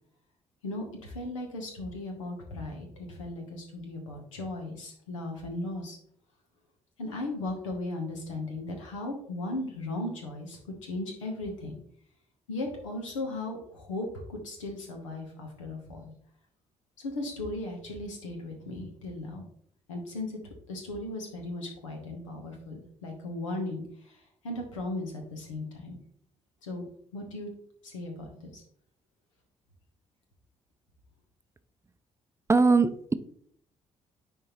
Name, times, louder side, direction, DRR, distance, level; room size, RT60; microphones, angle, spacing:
voice 1, 0.6-6.0 7.0-11.8 12.5-16.0 17.0-19.4 19.9-20.4 20.7-26.0 26.6-26.9 27.1-27.5 27.8-28.6, left 2 dB, 85° left, 2 dB, 1.1 m, -37 dB
voice 2, 32.5-33.1, right 4 dB, 15° right, 12 dB, 0.5 m, -21 dB
9.9 x 3.6 x 3.0 m, 0.66 s
figure-of-eight pair, 40°, 16 cm